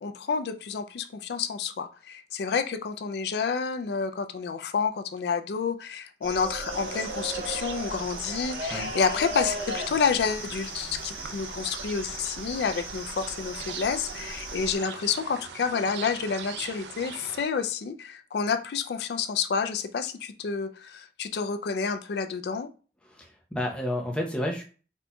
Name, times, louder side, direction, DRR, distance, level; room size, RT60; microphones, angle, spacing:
voice 1, 0.0-22.7, left 5 dB, 70° left, 9 dB, 0.3 m, -29 dB
sound 1, 6.2-14.8, right 1 dB, 60° right, 1.5 m, -37 dB
sound 2, 6.7-17.5, right 6 dB, 85° right, 0.4 m, -41 dB
voice 2, 23.1-24.6, left 1 dB, 5° left, 0 dB, 0.5 m, -31 dB
4.2 x 2.6 x 2.2 m, 0.37 s
head